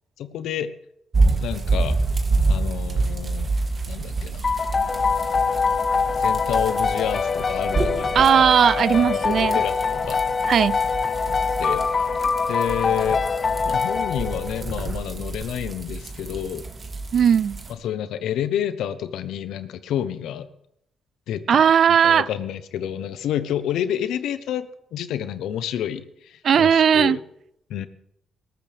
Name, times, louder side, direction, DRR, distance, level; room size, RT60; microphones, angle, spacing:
voice 1, 0.2-0.7 1.4-2.0 2.5-3.5 3.9-4.5 6.2-8.5 9.0-10.2 11.3-12.1 12.5-13.2 13.6-16.7 17.8-20.5 21.3-21.7 22.0-27.2 27.7-27.9, left 10 dB, 85° left, 0.9 m, -29 dB
sound 1, 1.1-17.7, right 3 dB, 40° right, 2.2 m, -28 dB
sound 2, 4.4-14.8, left 5 dB, 40° left, 0.6 m, -24 dB
voice 2, 8.1-9.6 10.5-10.8 17.1-17.6 21.5-22.3 26.4-27.2, right 8 dB, 60° right, 0.4 m, -17 dB
20.0 x 13.0 x 3.5 m
cardioid pair, 85°, 0 cm